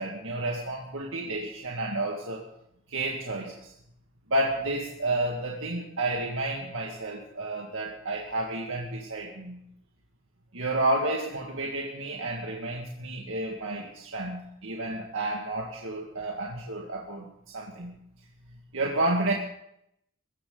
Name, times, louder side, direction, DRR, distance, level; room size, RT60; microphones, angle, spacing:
voice 1, 0.0-2.5 2.9-3.7 4.3-9.6 10.5-17.3 17.5-17.9 18.7-19.3, right 2 dB, 65° right, -1 dB, 2.1 m, -31 dB
23.5 x 15.0 x 4.0 m, 0.76 s
head